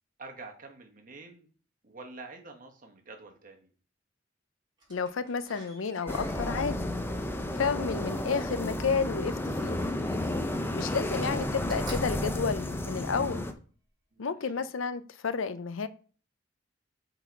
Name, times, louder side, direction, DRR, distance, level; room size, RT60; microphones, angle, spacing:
voice 1, 0.2-1.5 1.8-3.7 14.1-14.6, right 3 dB, 45° right, 3 dB, 1.4 m, -47 dB
Slam, 4.8-8.6 9.7-10.7 11.0-13.3 13.8-13.9, equal, 25° right, 3.0 m, -48 dB
voice 2, 4.9-6.8 7.6-9.7 10.7-13.4 14.2-15.9, left 5 dB, 80° left, 14 dB, 0.6 m, -31 dB
sound 1, 6.1-13.5, left 1 dB, 10° left, 0.6 m, -32 dB
8.1 x 4.0 x 4.6 m, 0.41 s
head